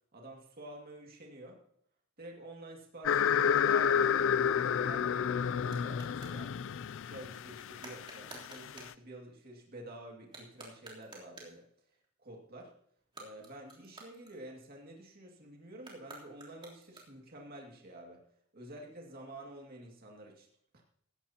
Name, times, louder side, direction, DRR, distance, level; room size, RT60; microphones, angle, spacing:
voice 1, 0.1-1.6 2.2-4.3 4.6-6.5 7.0-11.7 12.2-12.7 13.2-18.2 18.5-20.5, right 1 dB, 45° right, 0 dB, 2.2 m, -49 dB
sound 1, 3.0-8.9, left 8 dB, 60° left, 0.4 m, -30 dB
sound 2, 5.6-6.4 7.8-9.0 10.2-11.6 13.0-14.8 15.8-17.4, right 3 dB, 25° right, 3.4 m, -53 dB
17.5 x 14.0 x 2.9 m, 0.67 s
head